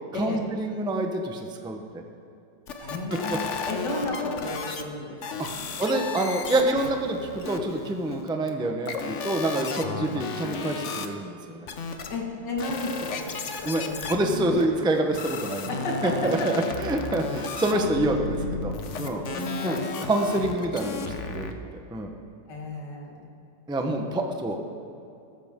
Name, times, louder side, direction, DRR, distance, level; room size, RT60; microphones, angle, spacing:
voice 1, 0.1-2.0 2.8-2.9 3.6-3.7 5.4-5.5 5.8-11.7 13.6-15.7 16.0-19.3 19.6-21.5 21.9-22.1 23.7-24.6, right 1 dB, 5° right, 3 dB, 0.5 m, -27 dB
sound 1, 2.7-4.8 5.2-8.5 8.9-11.1 11.7-12.2 12.6-21.5, left 4 dB, 50° left, 1.0 m, -34 dB
voice 2, 2.8-5.7 10.0-10.2 12.1-14.3 15.7-16.5 19.0-20.1 22.5-23.3 24.0-24.2, left 2 dB, 75° left, -1 dB, 2.5 m, -33 dB
15.5 x 13.5 x 3.7 m, 2.7 s
omnidirectional pair, 1.9 m